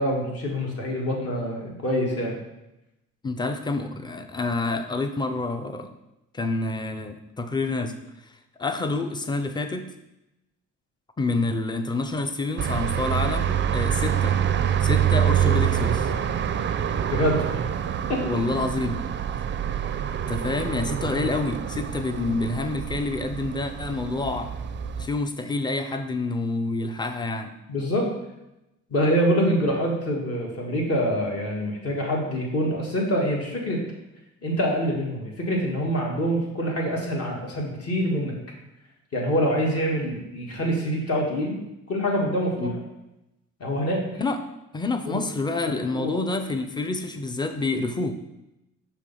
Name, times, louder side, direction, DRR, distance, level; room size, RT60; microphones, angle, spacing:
voice 1, 0.0-2.4 17.1-17.6 18.1-18.4 27.7-28.1 28.9-33.8 34.4-38.3 39.1-41.6 41.9-42.7 43.6-44.0 45.1-45.2 45.9-46.3, equal, 50° left, -1 dB, 1.8 m, -25 dB
voice 2, 3.2-5.9 6.3-7.9 8.6-9.9 11.2-14.4 14.8-16.1 18.2-19.0 20.3-24.5 25.0-27.5 42.6-42.8 44.2-44.4 44.7-48.1, left 3 dB, 15° left, 8 dB, 0.5 m, -28 dB
sound 1, 12.6-25.1, right 9 dB, 40° right, 0.4 m, -26 dB
6.6 x 3.0 x 5.4 m, 0.92 s
cardioid pair, 95°, 31 cm